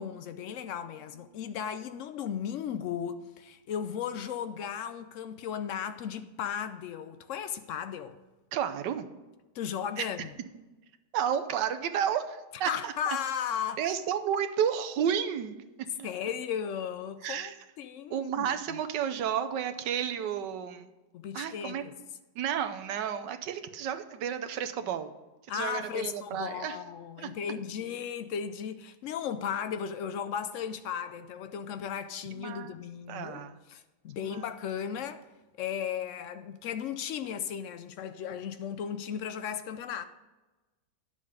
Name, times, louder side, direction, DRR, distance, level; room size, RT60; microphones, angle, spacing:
voice 1, 0.0-8.2 9.5-10.3 12.6-13.8 16.0-18.8 21.1-21.9 25.5-35.2 35.6-40.0, left 8 dB, 85° left, 0.6 m, -36 dB
voice 2, 8.5-9.1 10.0-10.1 11.1-13.2 13.8-15.6 16.0-16.1 17.2-17.5 18.1-20.9 21.3-21.9 22.3-25.1 25.5-26.8 27.2-27.3 32.3-32.7 33.1-33.6 34.2-34.4, right 8 dB, 85° right, 1.4 m, -32 dB
10.5 x 7.1 x 5.0 m
omnidirectional pair, 1.9 m